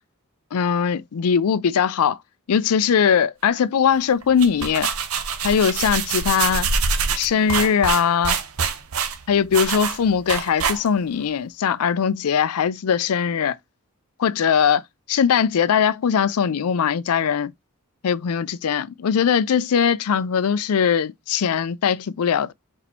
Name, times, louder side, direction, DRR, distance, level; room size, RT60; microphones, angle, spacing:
voice 1, 0.5-2.2 2.5-4.9 5.4-6.7 7.2-8.4 9.3-13.6 14.2-14.8 15.1-17.5 18.0-22.5, left 7 dB, 80° left, 0.4 m, -20 dB
sound 1, 4.2-11.2, right 5 dB, 75° right, 0.8 m, -25 dB
4.3 x 4.2 x 2.8 m
head